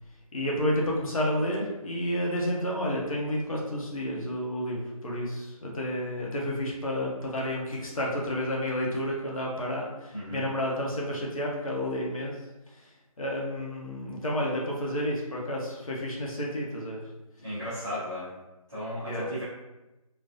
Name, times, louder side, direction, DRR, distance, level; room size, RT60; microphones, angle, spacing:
voice 1, 0.3-12.3 13.2-17.0 19.1-19.3, equal, 65° left, -3 dB, 1.0 m, -30 dB
voice 2, 10.1-10.4 17.4-18.3 18.7-19.4, equal, 5° right, -20 dB, 0.4 m, -35 dB
3.9 x 2.3 x 2.6 m, 1.0 s
figure-of-eight pair, 165°, 19 cm